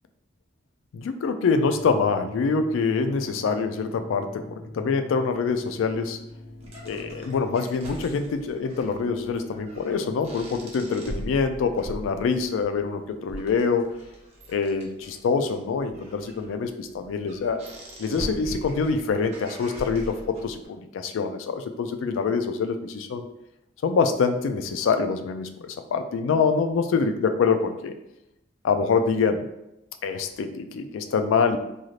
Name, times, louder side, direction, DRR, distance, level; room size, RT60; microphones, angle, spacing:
voice 1, 0.9-6.2 6.8-13.9 14.5-17.6 18.0-23.3 23.8-27.9 28.6-29.5 30.0-31.6, left 5 dB, 75° left, 8 dB, 0.3 m, -25 dB
sound 1, 1.6-7.4, left 1 dB, 40° left, 0.6 m, -43 dB
sound 2, 5.6-20.6, equal, 35° right, 0.7 m, -42 dB
2.6 x 2.4 x 3.1 m, 0.86 s
head